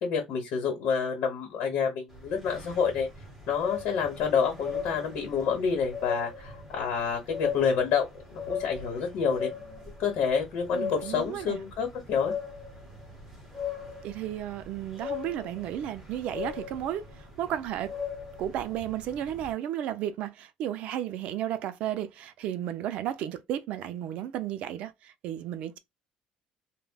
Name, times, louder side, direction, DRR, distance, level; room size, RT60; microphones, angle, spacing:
voice 1, 0.0-3.1 3.5-8.1 8.3-12.3, left 6 dB, 60° left, 1.1 m, -28 dB
sound 1, 2.1-19.5, left 6 dB, 5° right, 1.0 m, -39 dB
voice 2, 10.7-11.6 14.0-17.9 18.4-25.8, right 11 dB, 55° right, 0.4 m, -33 dB
3.3 x 2.1 x 2.3 m
cardioid pair, 165°, 2 cm